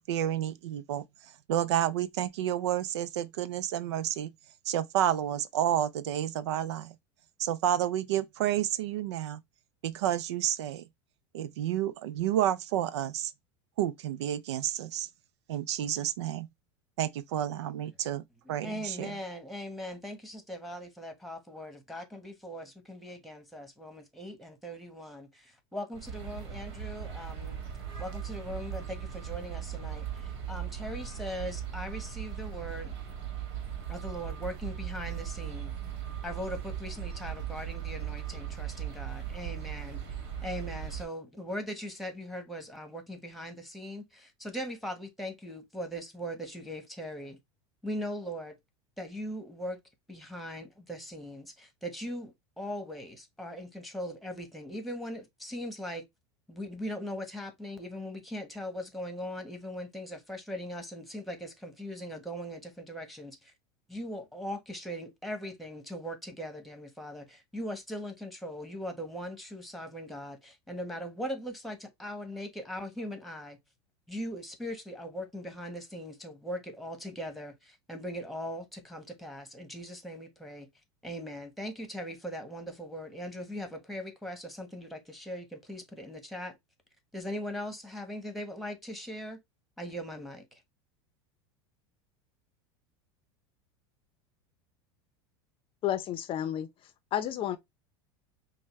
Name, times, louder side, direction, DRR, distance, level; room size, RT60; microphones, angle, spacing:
voice 1, 0.1-1.0 1.5-4.3 4.7-6.9 7.4-9.4 9.8-10.8 11.3-13.3 13.8-15.1 15.5-16.5 17.0-18.2 18.5-19.1, right 11 dB, 85° right, 0.4 m, -30 dB
voice 2, 18.4-27.6 28.0-33.0 33.9-35.7 36.2-40.0 40.4-47.4 47.8-48.6 49.0-49.8 50.1-56.0 56.5-63.5 63.9-73.6 74.1-80.7 81.0-86.6 87.1-89.4 89.8-90.6, equal, ahead, 1.2 m, -40 dB
sound 1, 25.9-41.0, right 9 dB, 70° right, 1.4 m, -38 dB
voice 3, 95.8-96.7 97.1-97.6, left 11 dB, 40° left, 0.6 m, -31 dB
5.4 x 2.1 x 3.1 m
supercardioid pair, 110°, 14 cm